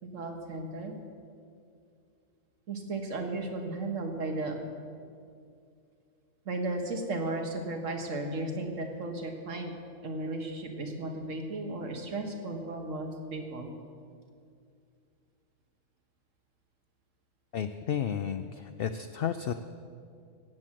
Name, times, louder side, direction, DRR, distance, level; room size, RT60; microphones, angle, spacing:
voice 1, 0.0-0.9 2.7-4.6 6.5-9.7 10.0-13.7, right 2 dB, 65° right, 4 dB, 1.9 m, -35 dB
voice 2, 17.5-19.5, left 8 dB, 65° left, 8 dB, 0.6 m, -32 dB
17.0 x 7.7 x 7.6 m, 2.4 s
omnidirectional pair, 1.4 m